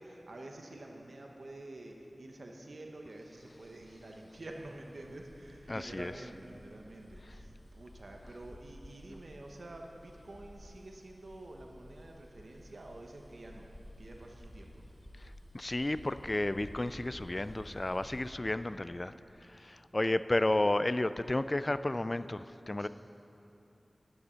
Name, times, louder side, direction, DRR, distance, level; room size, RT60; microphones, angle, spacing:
voice 1, 0.0-13.7 14.0-14.8 22.8-22.9, right 1 dB, 75° right, 1 dB, 0.9 m, -48 dB
Bus, 3.2-18.4, equal, 15° left, 1.9 m, -54 dB
voice 2, 5.7-6.1 15.2-19.1 19.4-22.9, left 1 dB, 35° left, 13 dB, 0.3 m, -32 dB
10.5 x 9.5 x 5.6 m, 2.8 s
wide cardioid pair, 55°, 0 cm